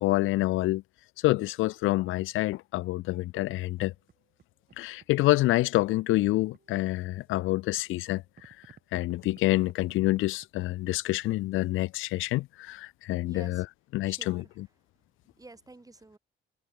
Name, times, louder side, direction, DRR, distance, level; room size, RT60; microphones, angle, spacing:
voice 1, 0.0-0.8 1.2-3.9 4.8-8.5 8.9-13.7 13.9-14.7, left 18 dB, 85° left, 0.5 m, -27 dB
sound 1, 3.3-4.4 4.7-10.5, right 7 dB, 50° right, 6.9 m, -58 dB
voice 2, 13.3-13.6 14.0-14.5 15.4-16.2, right 2 dB, 20° right, 3.7 m, -49 dB
cardioid pair, 90°, 20 cm